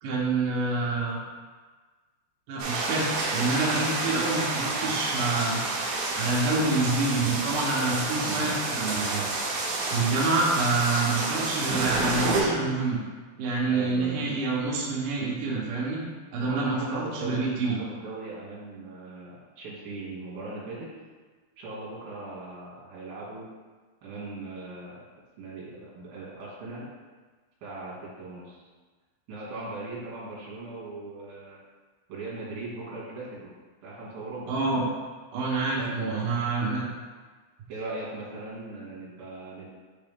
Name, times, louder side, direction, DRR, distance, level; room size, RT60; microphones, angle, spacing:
voice 1, 0.0-1.2 2.5-5.6 6.1-9.2 9.9-13.0 13.4-16.0 16.3-17.8 34.5-34.8 35.3-36.9, right 3 dB, 90° right, -5 dB, 1.9 m, -27 dB
sound 1, 2.6-12.4, right 3 dB, 70° right, 2.5 m, -29 dB
voice 2, 8.2-8.5 13.7-14.2 16.4-20.9 21.6-23.5 24.0-25.0 25.4-26.9 27.6-28.6 29.3-31.6 32.1-33.5 33.8-34.6 35.8-36.3 37.7-39.7, right 2 dB, 55° right, -7 dB, 3.4 m, -39 dB
8.8 x 3.9 x 3.6 m, 1.4 s
omnidirectional pair, 5.7 m